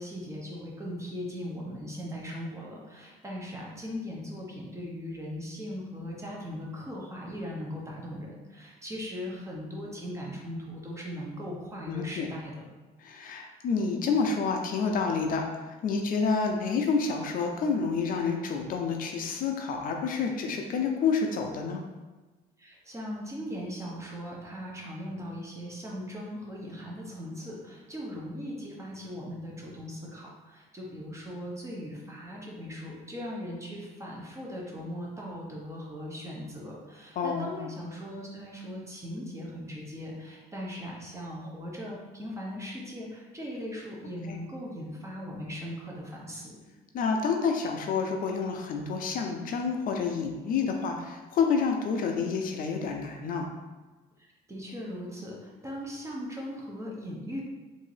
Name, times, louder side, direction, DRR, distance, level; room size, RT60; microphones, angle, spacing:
voice 1, 0.0-12.5 22.6-46.5 54.2-57.4, equal, 15° right, -3 dB, 0.8 m, -39 dB
voice 2, 11.9-12.3 13.0-21.8 37.2-37.6 44.3-44.4 46.9-53.5, left 5 dB, 55° left, 3 dB, 0.4 m, -29 dB
3.5 x 2.6 x 3.3 m, 1.2 s
cardioid pair, 110°, 17 cm